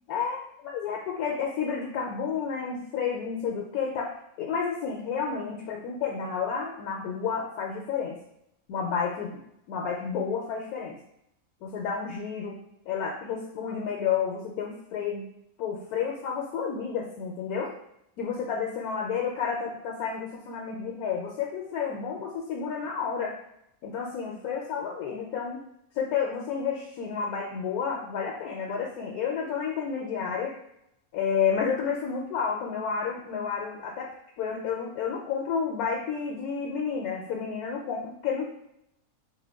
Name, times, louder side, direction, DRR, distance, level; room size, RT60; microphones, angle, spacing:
voice 1, 0.1-4.1 4.4-8.2 8.7-9.4 9.7-11.0 11.6-12.6 12.9-15.3 15.6-17.7 18.2-23.4 23.8-25.6 25.9-30.5 31.1-34.1 34.4-38.5, left 6 dB, 80° left, -1 dB, 1.0 m, -30 dB
3.7 x 2.2 x 3.4 m, 0.77 s
omnidirectional pair, 1.6 m